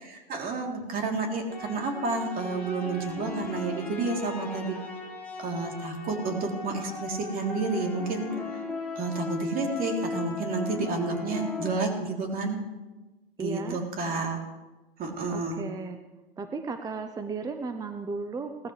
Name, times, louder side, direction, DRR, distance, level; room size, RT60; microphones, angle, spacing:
voice 1, 0.0-4.8 5.4-8.3 8.9-12.7 13.4-14.4 15.0-15.7, right 3 dB, 30° right, 1 dB, 3.4 m, -30 dB
sound 1, 1.5-11.8, left 3 dB, 5° left, 4.8 m, -37 dB
voice 2, 13.4-13.8 15.3-16.0 16.4-18.7, right 4 dB, 10° right, 7 dB, 0.7 m, -35 dB
19.0 x 14.0 x 3.4 m, 1.1 s
hypercardioid pair, 115°, 29 cm